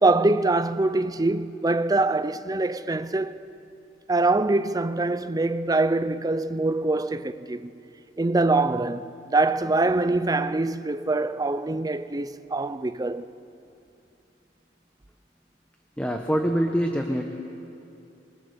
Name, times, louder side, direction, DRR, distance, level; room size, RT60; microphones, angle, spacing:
voice 1, 0.0-3.4 4.1-7.7 8.2-13.3, right 2 dB, 20° right, 0.6 m, -24 dB
voice 2, 16.0-17.3, equal, 5° left, 1.0 m, -24 dB
23.5 x 20.5 x 6.9 m
head